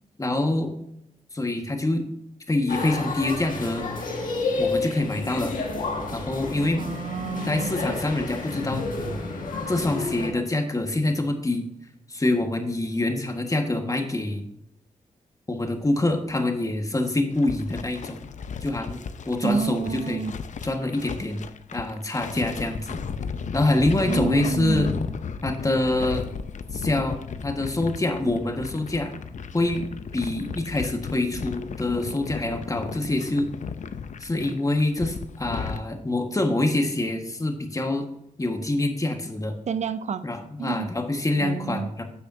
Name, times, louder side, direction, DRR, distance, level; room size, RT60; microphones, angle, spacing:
voice 1, 0.2-0.7 1.3-2.0 2.5-3.8 4.6-5.6 6.1-6.8 7.4-8.8 9.7-11.6 12.1-14.4 15.5-18.3 18.6-20.2 20.6-21.4 21.7-23.0 23.5-24.9 25.4-26.3 26.7-29.1 29.5-29.9 30.1-33.5 34.2-38.1 38.4-39.5 40.2-42.0, left 2 dB, 25° left, 4 dB, 1.5 m, -25 dB
sound 1, 2.7-10.3, left 3 dB, 80° left, 1.7 m, -30 dB
voice 2, 6.8-7.7 19.4-20.3 24.1-24.8 39.7-40.3 40.6-40.9 41.4-41.9, right 6 dB, 55° right, 13 dB, 0.5 m, -29 dB
sound 2, 17.3-35.8, left 6 dB, 60° left, 0.6 m, -35 dB
10.5 x 6.8 x 2.7 m, 0.80 s
cardioid pair, 60°, 14 cm